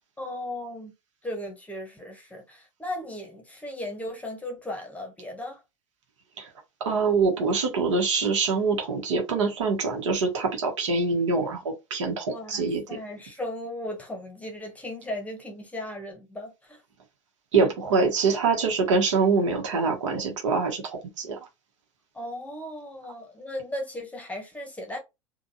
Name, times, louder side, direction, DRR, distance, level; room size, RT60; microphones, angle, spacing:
voice 1, 0.2-0.9 1.2-5.6 12.3-16.8 22.1-25.0, left 1 dB, 10° left, 1.1 m, -36 dB
voice 2, 6.8-12.8 17.5-21.4, right 4 dB, 65° right, 1.2 m, -24 dB
3.8 x 2.3 x 2.7 m
figure-of-eight pair, 80°, 17 cm